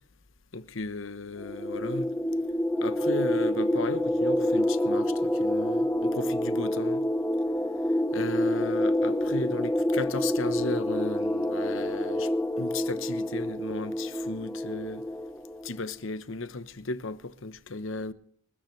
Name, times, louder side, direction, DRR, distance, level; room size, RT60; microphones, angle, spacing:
voice 1, 0.5-2.1 2.8-7.0 8.1-12.3 12.6-15.0 15.6-18.1, left 3 dB, 65° left, 0.9 m, -35 dB
sound 1, 1.4-15.7, left 1 dB, 10° left, 0.7 m, -27 dB
26.0 x 13.5 x 3.2 m
head